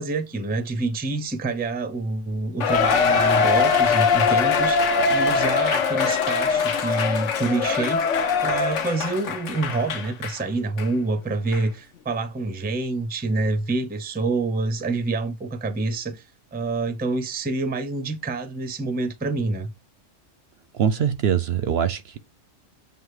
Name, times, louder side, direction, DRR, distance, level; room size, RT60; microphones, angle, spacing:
voice 1, 0.0-8.1 8.4-16.2 16.5-19.7, right 3 dB, 10° right, 0.4 m, -27 dB
Cheering, 2.6-10.4 10.8-10.9 11.5-11.6, left 5 dB, 70° left, 1.1 m, -22 dB
voice 2, 20.7-22.2, right 8 dB, 65° right, 0.7 m, -23 dB
7.8 x 2.7 x 4.8 m
omnidirectional pair, 1.3 m